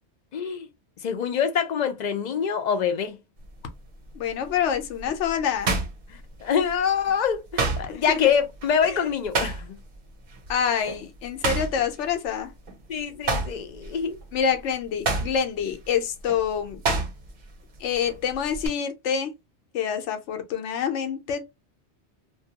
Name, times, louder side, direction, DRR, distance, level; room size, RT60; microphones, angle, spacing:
voice 1, 0.3-0.7 1.0-3.2 6.1-9.8 11.5-11.6 12.9-14.2, left 7 dB, 55° left, 0.5 m, -25 dB
sound 1, 3.4-3.7 4.3-6.8 7.1-10.0 10.3-10.5 10.9-12.8 13.1-17.5 17.8-18.7, right 3 dB, 50° right, 0.7 m, -29 dB
voice 2, 4.1-5.8 7.9-8.2 8.8-9.0 10.5-12.5 14.3-16.8 17.8-19.3 19.7-21.4, left 7 dB, 85° left, 0.9 m, -27 dB
2.6 x 2.2 x 2.7 m
omnidirectional pair, 1.2 m